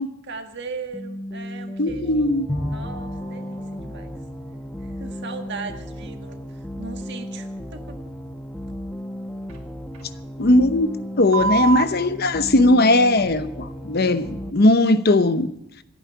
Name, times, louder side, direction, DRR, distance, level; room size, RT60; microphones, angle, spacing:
voice 1, 0.2-4.1 4.8-8.0, right 4 dB, 50° right, 6 dB, 1.7 m, -38 dB
sound 1, 0.9-14.5, equal, 5° left, 1.0 m, -35 dB
voice 2, 1.8-2.5 10.4-15.5, left 2 dB, 45° left, 12 dB, 0.8 m, -18 dB
Bowed string instrument, 2.5-6.2, left 1 dB, 30° left, 5.7 m, -35 dB
sound 2, 9.5-9.6 9.9-10.0 11.3-11.8 13.0-13.5 14.2-14.4, right 4 dB, 85° right, 3.1 m, -25 dB
26.0 x 9.4 x 4.6 m, 0.84 s
head